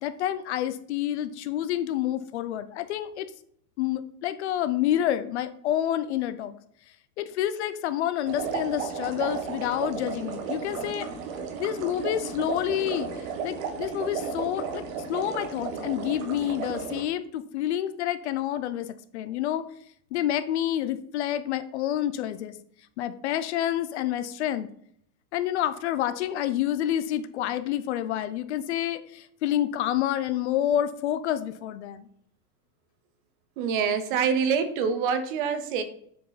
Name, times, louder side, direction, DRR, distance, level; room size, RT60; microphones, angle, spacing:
voice 1, 0.0-3.3 3.8-6.5 7.2-11.1 11.6-13.1 13.4-14.8 15.1-18.9 19.1-19.6 20.1-22.5 23.0-24.7 25.3-32.1, left 11 dB, 50° left, 12 dB, 0.5 m, -28 dB
sound 1, 8.3-17.0, right 6 dB, 55° right, 1.4 m, -34 dB
voice 2, 33.6-35.8, right 6 dB, 35° right, 10 dB, 0.6 m, -25 dB
7.3 x 4.8 x 3.9 m, 0.66 s
supercardioid pair, 170°, 47 cm